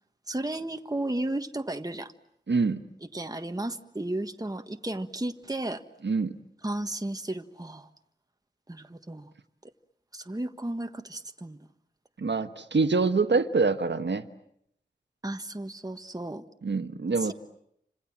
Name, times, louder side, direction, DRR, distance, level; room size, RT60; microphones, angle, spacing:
voice 1, 0.3-2.1 3.1-5.8 6.6-7.9 8.7-9.3 9.6-9.7 10.1-11.6 15.2-16.4 17.2-17.3, right 1 dB, 20° right, 7 dB, 1.5 m, -34 dB
voice 2, 2.5-2.8 6.0-6.4 12.2-14.2 16.6-17.3, right 4 dB, 80° right, 8 dB, 1.4 m, -25 dB
29.5 x 26.5 x 7.4 m, 0.73 s
wide cardioid pair, 60°, 18 cm